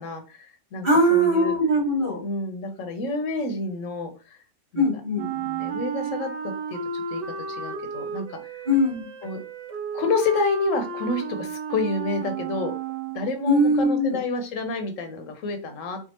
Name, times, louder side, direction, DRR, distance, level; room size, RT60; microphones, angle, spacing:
voice 1, 0.0-1.5 2.2-4.1 4.7-4.8 5.3-6.3 6.7-7.2 7.6-8.4 9.2-9.4 9.9-12.7 13.1-16.0, left 3 dB, 90° left, 6 dB, 1.1 m, -29 dB
voice 2, 0.8-2.2 4.7-5.3 8.7-9.0 13.4-14.2, equal, 25° right, -4 dB, 1.7 m, -21 dB
Wind instrument woodwind instrument, 5.1-13.4, right 6 dB, 50° right, 0.5 m, -33 dB
4.5 x 2.4 x 2.9 m, 0.35 s
omnidirectional pair, 1.3 m